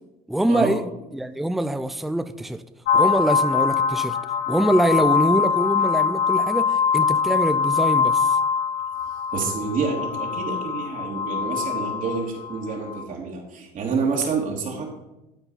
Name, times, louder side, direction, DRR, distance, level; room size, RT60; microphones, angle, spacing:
voice 1, 0.3-0.8 1.1-2.6 2.9-4.2 4.5-8.3, right 1 dB, ahead, 10 dB, 0.5 m, -24 dB
sound 1, 2.9-13.0, left 6 dB, 60° left, 0.8 m, -23 dB
voice 2, 9.3-14.9, right 4 dB, 50° right, -1 dB, 2.8 m, -28 dB
12.0 x 4.6 x 5.7 m, 0.95 s
supercardioid pair, 90°, 17 cm